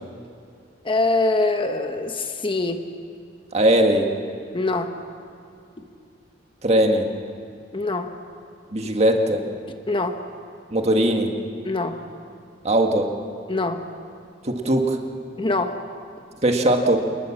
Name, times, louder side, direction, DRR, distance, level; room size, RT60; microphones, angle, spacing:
voice 1, 0.8-2.9 4.5-5.0 7.7-8.1 9.9-10.2 11.6-12.0 13.5-13.9 15.4-15.8, left 2 dB, 25° left, 6 dB, 1.1 m, -24 dB
voice 2, 3.5-4.1 6.6-7.1 8.7-9.4 10.7-11.3 12.6-13.1 14.4-15.0 16.4-17.0, right 1 dB, 35° right, 3 dB, 1.8 m, -19 dB
26.5 x 20.0 x 7.4 m, 2.4 s
head